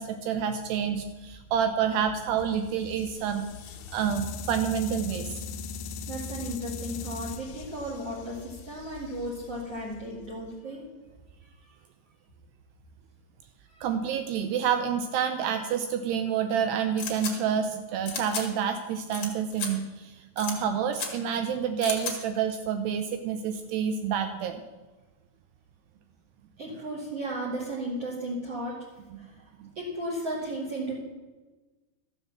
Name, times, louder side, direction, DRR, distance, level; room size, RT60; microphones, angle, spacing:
voice 1, 0.0-5.4 13.8-24.6 29.6-29.7, right 8 dB, 80° right, 7 dB, 2.5 m, -28 dB
sound 1, 2.4-10.5, left 5 dB, 85° left, 3.2 m, -40 dB
voice 2, 6.1-10.8 13.7-13.9 26.6-28.7 29.2-29.3 29.8-31.0, right 1 dB, 40° right, -4 dB, 2.8 m, -34 dB
sound 2, 17.0-17.3 18.1-18.4 19.1-19.3 19.5-19.7 20.4-20.5 20.9-21.1 21.8-22.1, left 5 dB, 50° left, 1.9 m, -33 dB
13.5 x 7.3 x 7.4 m, 1.2 s
omnidirectional pair, 5.3 m